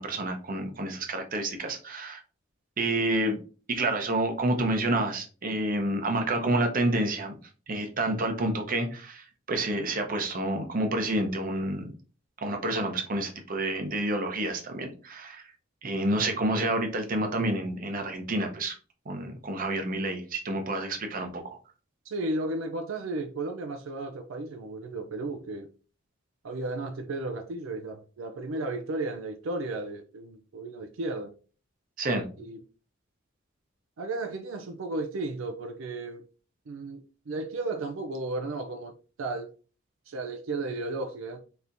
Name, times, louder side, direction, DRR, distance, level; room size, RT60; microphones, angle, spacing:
voice 1, 0.0-2.2 2.8-3.4 3.7-7.3 7.7-11.9 12.4-15.5 15.8-18.8 19.1-21.6 32.0-32.2, right 1 dB, 45° right, 0.7 m, -29 dB
voice 2, 22.1-25.7 26.4-31.3 32.4-32.6 34.0-36.2 36.7-39.5 40.1-41.4, right 2 dB, 80° right, 0.4 m, -34 dB
4.2 x 3.4 x 2.6 m
head